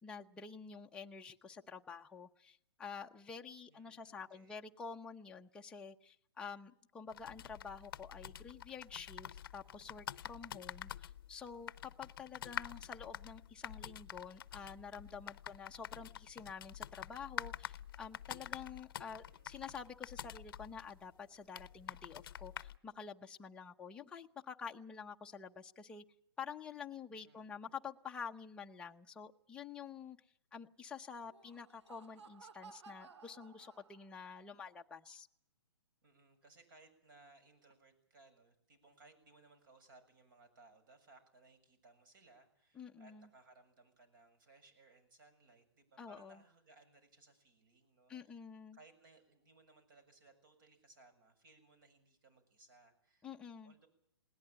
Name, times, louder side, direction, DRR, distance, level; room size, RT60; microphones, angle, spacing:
voice 1, 0.0-26.0 26.4-30.2 30.5-35.3 42.8-43.3 46.0-46.4 48.1-48.8 53.2-53.7, left 6 dB, 5° left, 2 dB, 0.8 m, -49 dB
voice 2, 3.7-4.6 19.1-19.5 27.1-27.6 36.0-48.4 48.7-53.3 53.6-53.9, right 3 dB, 50° right, 11 dB, 7.1 m, -64 dB
sound 1, 7.1-22.8, left 10 dB, 55° left, 0.8 m, -48 dB
Laughter, 31.2-34.3, right 5 dB, 85° right, 1.0 m, -58 dB
20.5 x 18.5 x 8.8 m, 0.73 s
hypercardioid pair, 155°, 14 cm